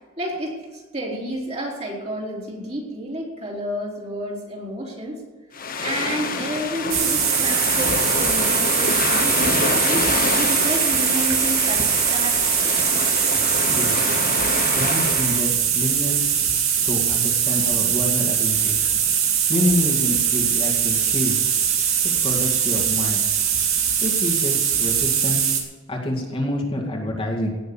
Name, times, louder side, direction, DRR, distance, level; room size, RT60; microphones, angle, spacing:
voice 1, 0.2-5.2 5.8-9.4 9.8-12.7 16.8-16.9, equal, 30° right, -3 dB, 3.8 m, -30 dB
sound 1, 5.5-15.5, left 4 dB, 45° left, 1.3 m, -26 dB
sound 2, 6.9-25.6, right 8 dB, 75° right, 2.5 m, -21 dB
voice 2, 13.7-14.1 14.7-16.3 16.9-18.9 19.5-21.4 22.0-23.3 24.0-25.4 25.9-27.5, left 1 dB, 25° left, -2 dB, 2.3 m, -27 dB
18.0 x 6.6 x 7.3 m, 1.4 s
head